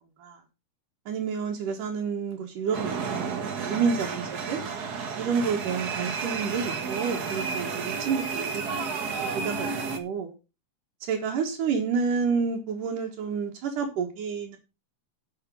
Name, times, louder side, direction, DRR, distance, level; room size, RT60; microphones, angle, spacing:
voice 1, 1.1-4.6 5.2-9.7 10.0-10.3 11.1-14.6, right 5 dB, 85° right, 3.3 m, -29 dB
sound 1, 2.7-10.0, right 5 dB, 45° right, 1.3 m, -32 dB
11.5 x 6.7 x 5.5 m
omnidirectional pair, 3.6 m